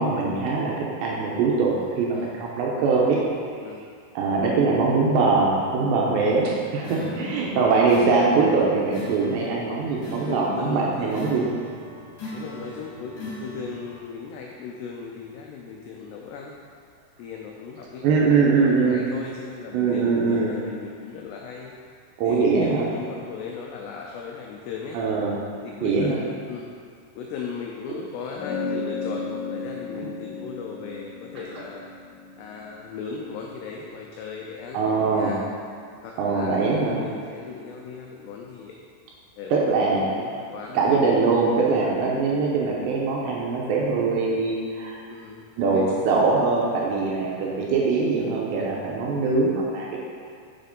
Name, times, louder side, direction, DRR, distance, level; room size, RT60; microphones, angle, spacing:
voice 1, 0.0-3.2 4.2-11.4 18.0-19.0 19.7-20.5 22.2-22.9 24.9-25.4 25.8-26.2 34.7-35.3 36.2-37.0 39.5-40.1 40.7-45.0 45.6-50.0, right 4 dB, 75° right, -3 dB, 2.8 m, -22 dB
voice 2, 1.7-2.3 3.6-3.8 6.2-6.5 6.8-7.5 10.2-11.5 12.3-16.6 17.2-21.7 22.2-25.0 25.6-26.7 27.2-31.8 32.4-35.4 36.0-38.8 39.4-39.6 39.9-40.9 45.1-45.4 45.7-46.0 47.1-47.3, left 5 dB, 90° left, 0 dB, 2.4 m, -37 dB
sound 1, 6.8-14.0, left 1 dB, 35° left, 2.5 m, -40 dB
sound 2, 28.4-33.2, left 4 dB, 65° left, 2.3 m, -34 dB
7.5 x 6.4 x 5.3 m, 2.2 s
omnidirectional pair, 5.7 m